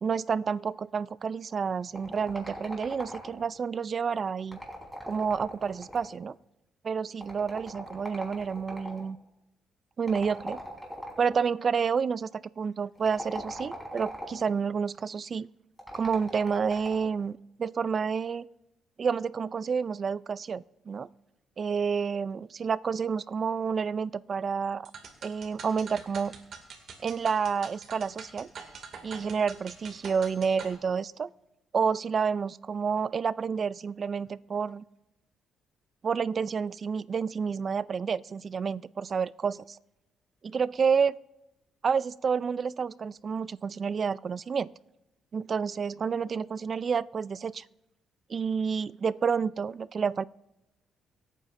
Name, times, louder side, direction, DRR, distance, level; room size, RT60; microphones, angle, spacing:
voice 1, 0.0-4.6 5.1-6.4 6.8-9.2 10.0-10.6 11.2-15.5 15.9-18.5 19.0-21.1 21.6-24.9 25.2-26.3 27.0-28.5 29.0-31.3 31.7-34.8 36.0-39.8 40.4-41.1 41.8-44.7 45.3-47.6 48.3-50.2, right 6 dB, 45° right, 19 dB, 0.3 m, -29 dB
sound 1, 2.0-3.6 4.4-6.2 7.2-9.0 10.1-11.4 13.0-14.5 15.8-17.1, equal, ahead, 3.8 m, -41 dB
sound 2, 24.8-30.8, right 5 dB, 65° right, 2.1 m, -45 dB
23.5 x 9.0 x 2.5 m, 0.91 s
cardioid pair, 90°, 0 cm